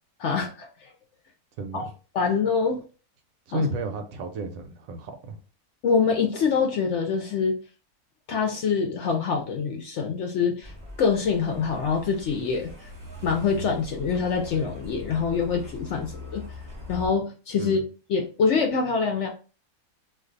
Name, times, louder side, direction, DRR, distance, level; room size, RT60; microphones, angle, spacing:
voice 1, 0.2-0.9 1.7-1.9 2.1-2.8 3.5-3.6 5.8-7.5 8.3-10.7 11.0-12.9 13.2-16.4 16.9-17.8 18.1-19.3, left 5 dB, 65° left, 0.7 m, -25 dB
voice 2, 1.6-1.9 3.5-5.4 17.6-17.9, right 1 dB, 70° right, 1.0 m, -32 dB
Truck, 10.6-17.1, left 1 dB, 20° right, 0.7 m, -41 dB
2.5 x 2.3 x 3.8 m
omnidirectional pair, 1.6 m